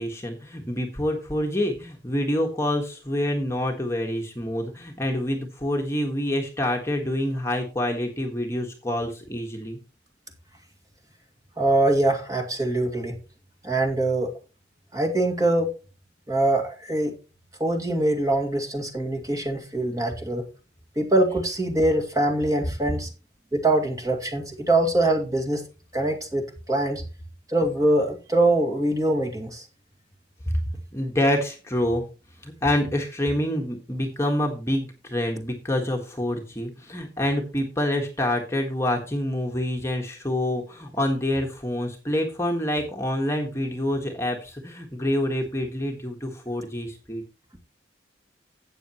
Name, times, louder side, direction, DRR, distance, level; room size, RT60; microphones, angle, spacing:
voice 1, 0.0-9.8 30.5-32.0 32.4-47.2, left 1 dB, 15° left, 1 dB, 1.5 m, -27 dB
voice 2, 11.6-13.1 13.6-14.3 14.9-15.7 16.3-17.1 17.6-20.4 21.0-23.1 23.5-25.6 25.9-27.0 27.5-29.7, right 1 dB, 20° right, 2 dB, 2.1 m, -23 dB
13.5 x 8.7 x 3.0 m, 0.33 s
head